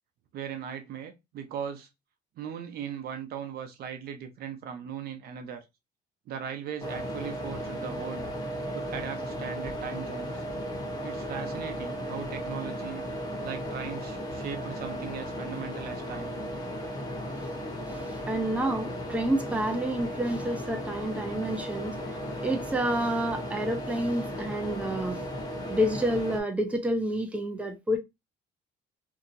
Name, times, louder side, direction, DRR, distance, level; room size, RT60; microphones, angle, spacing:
voice 1, 0.3-1.9 2.4-5.6 6.3-8.3 8.7-10.4 11.0-13.0 13.4-16.3, right 8 dB, 65° right, 0.7 m, -38 dB
sound 1, 6.8-26.4, equal, 25° left, 0.9 m, -35 dB
voice 2, 18.1-22.0 22.4-25.2 25.7-28.0, right 1 dB, 10° right, 0.6 m, -29 dB
2.8 x 2.7 x 2.6 m
cardioid pair, 110°, 17 cm